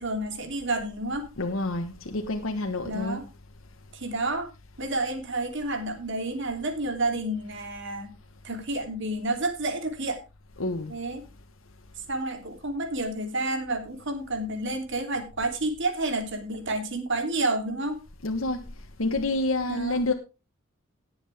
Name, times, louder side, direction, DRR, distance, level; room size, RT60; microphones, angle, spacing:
voice 1, 0.0-1.3 2.8-3.3 3.9-4.5 4.8-8.1 8.4-10.2 10.9-11.2 12.1-18.0 19.7-20.0, right 2 dB, 65° right, 3.1 m, -30 dB
voice 2, 1.4-3.2 10.6-10.9 18.2-18.6 19.0-20.1, left 2 dB, 85° left, 1.3 m, -28 dB
18.0 x 7.8 x 3.5 m
head